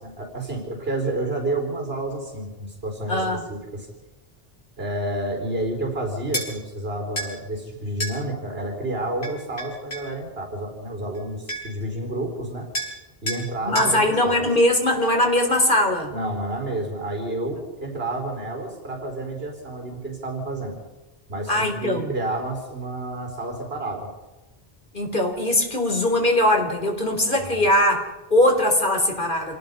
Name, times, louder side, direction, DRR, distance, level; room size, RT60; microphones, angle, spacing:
voice 1, 0.0-3.9 4.8-12.7 13.2-14.4 16.1-20.8 21.3-24.1 27.3-27.7, right 1 dB, 70° right, 3 dB, 4.8 m, -30 dB
voice 2, 3.1-3.4 13.7-16.1 21.5-22.1 24.9-29.6, left 1 dB, 55° left, 3 dB, 4.0 m, -21 dB
sound 1, 6.3-6.5 7.2-7.3 8.0-8.2 9.2-10.1 11.1-11.2 11.5-11.8 12.7-13.0 13.3-13.4 13.8-13.9, right 1 dB, 80° left, 5.8 m, -29 dB
28.0 x 19.0 x 5.5 m, 1.1 s
omnidirectional pair, 1.1 m